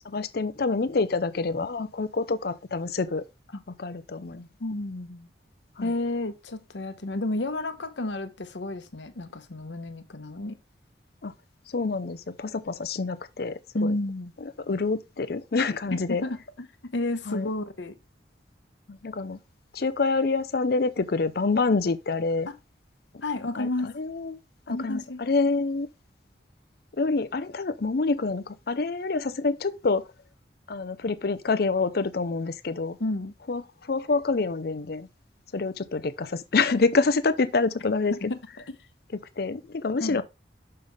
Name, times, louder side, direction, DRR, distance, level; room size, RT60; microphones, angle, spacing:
voice 1, 0.1-3.2 3.8-4.5 5.8-5.9 11.2-11.3 11.7-13.9 14.7-16.2 17.3-17.5 18.9-19.4 19.7-22.5 23.6-24.4 24.7-25.9 27.0-30.0 30.7-33.0 33.5-33.6 33.9-35.1 35.5-38.3 39.4-40.2, left 3 dB, 55° left, 0.6 m, -27 dB
voice 2, 4.6-5.3 5.8-10.6 13.7-14.3 15.9-18.0 22.5-22.6 23.2-23.9 24.7-25.2 33.0-33.3 38.1-38.8 40.0-40.2, left 2 dB, 80° left, 1.0 m, -31 dB
6.6 x 5.7 x 3.5 m
head